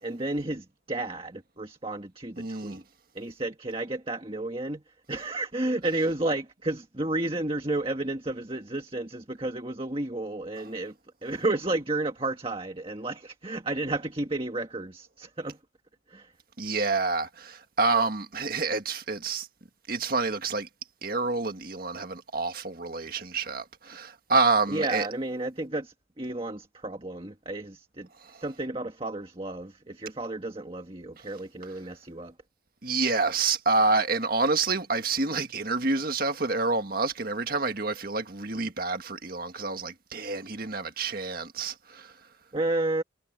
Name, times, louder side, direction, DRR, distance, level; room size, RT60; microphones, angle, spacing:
voice 1, 0.0-2.8 3.1-10.9 11.2-15.6 16.1-16.3 24.7-32.3 42.5-43.0, right 2 dB, 30° right, 1.7 m, -32 dB
voice 2, 2.4-2.8 16.6-19.5 19.9-20.7 21.0-25.1 31.2-31.3 32.8-42.1, right 3 dB, 50° right, 1.7 m, -28 dB
head